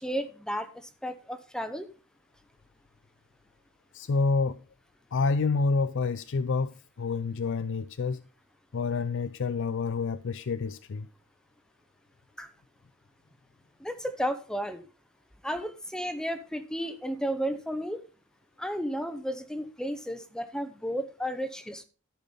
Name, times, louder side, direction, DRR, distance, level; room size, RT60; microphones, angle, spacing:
voice 1, 0.0-1.9 12.4-12.5 13.8-14.9 15.4-18.0 18.6-21.8, equal, 5° left, 0.8 m, -33 dB
voice 2, 3.9-4.6 5.1-8.2 8.7-11.1, left 4 dB, 60° left, 0.5 m, -28 dB
13.5 x 5.8 x 5.4 m
head